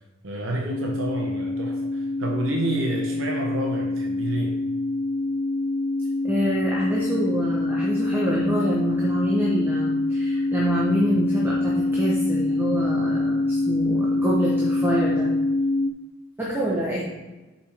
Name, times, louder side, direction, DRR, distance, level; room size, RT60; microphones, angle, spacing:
voice 1, 0.2-4.6, right 1 dB, 70° right, 0 dB, 0.8 m, -29 dB
sound 1, 0.7-15.9, left 2 dB, 80° left, 0.5 m, -25 dB
voice 2, 6.2-15.3 16.4-17.1, equal, 10° right, -5 dB, 1.0 m, -26 dB
7.0 x 5.3 x 3.5 m, 1.2 s
head